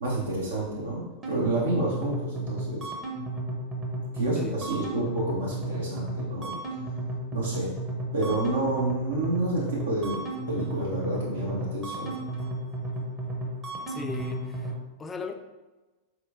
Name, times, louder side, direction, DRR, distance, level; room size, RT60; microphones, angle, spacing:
voice 1, 0.0-2.9 4.1-6.6 7.3-7.7 8.1-12.1, right 2 dB, 70° right, -6 dB, 0.8 m, -29 dB
sound 1, 1.2-14.7, right 1 dB, 20° right, 0.7 m, -33 dB
voice 2, 13.9-14.7 15.0-15.3, left 5 dB, 20° left, 7 dB, 0.3 m, -36 dB
4.1 x 3.0 x 2.5 m, 1.2 s
figure-of-eight pair, 90°, 0 cm